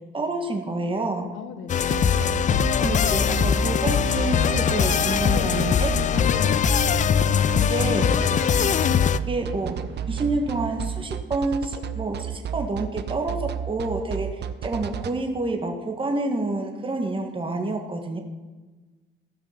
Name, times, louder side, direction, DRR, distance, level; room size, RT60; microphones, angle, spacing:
voice 1, 0.1-1.3 2.8-5.9 7.7-8.0 9.3-9.8 10.1-18.2, right 2 dB, 25° right, 3 dB, 1.7 m, -28 dB
voice 2, 1.3-1.9 5.2-5.6 6.2-6.8, left 8 dB, 85° left, 10 dB, 1.1 m, -35 dB
sound 1, 1.7-9.2, left 8 dB, 40° left, 0.4 m, -21 dB
sound 2, 1.9-15.1, right 9 dB, 60° right, 0.7 m, -31 dB
sound 3, 2.0-11.1, right 4 dB, 85° right, 1.7 m, -42 dB
15.0 x 6.2 x 5.9 m, 1.3 s
cardioid pair, 90°, 20 cm